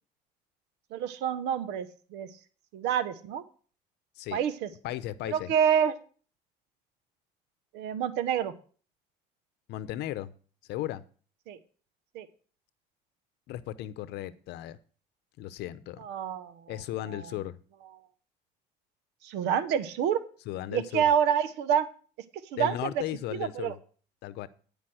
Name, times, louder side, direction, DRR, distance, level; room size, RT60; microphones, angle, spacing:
voice 1, 0.9-2.3 2.7-3.4 4.3-4.7 5.3-5.9 7.7-8.5 11.5-11.6 12.1-12.3 16.0-16.6 17.1-17.2 19.2-20.2 20.7-21.8 22.5-22.9 23.3-23.7, right 8 dB, 85° right, 13 dB, 1.0 m, -27 dB
voice 2, 4.8-5.5 9.7-10.3 10.7-11.0 13.5-14.8 15.4-16.0 16.7-17.6 20.5-21.1 22.5-23.8 24.2-24.5, left 14 dB, 80° left, 15 dB, 0.7 m, -36 dB
10.0 x 5.2 x 7.8 m, 0.41 s
supercardioid pair, 80°, 17 cm